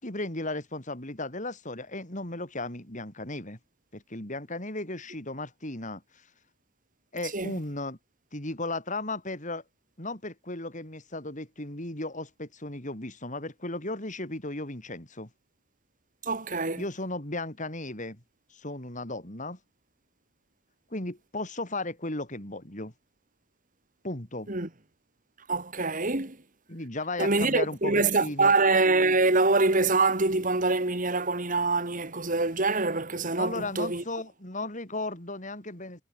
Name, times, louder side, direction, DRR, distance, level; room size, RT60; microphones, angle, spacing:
voice 1, 0.0-3.6 3.9-6.0 7.1-8.0 8.3-9.6 10.0-15.3 16.8-18.2 18.5-19.6 20.9-22.9 24.0-24.5 26.7-28.5 33.4-36.0, left 2 dB, 40° left, 4.8 m, -35 dB
voice 2, 16.2-16.8 24.5-24.7 25.5-26.4 27.2-34.0, right 3 dB, 40° right, 2.6 m, -25 dB
head